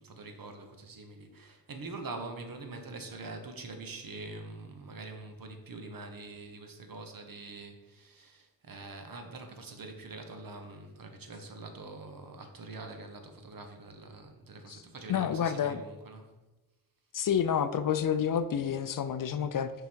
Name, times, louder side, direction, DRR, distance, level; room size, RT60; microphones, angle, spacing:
voice 1, 0.0-16.3, right 3 dB, 50° right, 5 dB, 1.1 m, -44 dB
voice 2, 15.1-15.8 17.1-19.7, left 8 dB, 50° left, 11 dB, 0.5 m, -29 dB
5.6 x 3.9 x 4.5 m, 1.1 s
supercardioid pair, 45°, 43 cm